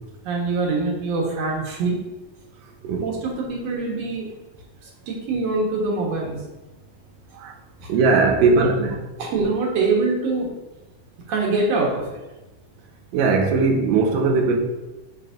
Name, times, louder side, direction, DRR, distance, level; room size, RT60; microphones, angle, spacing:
voice 1, 0.2-2.0 3.0-4.3 5.1-6.4 8.5-8.9 9.2-10.5 11.3-12.1, right 3 dB, 60° right, -2 dB, 2.1 m, -24 dB
voice 2, 7.9-8.9 13.1-14.6, right 4 dB, 85° right, 3 dB, 2.4 m, -19 dB
8.0 x 5.8 x 2.6 m, 1.0 s
omnidirectional pair, 4.0 m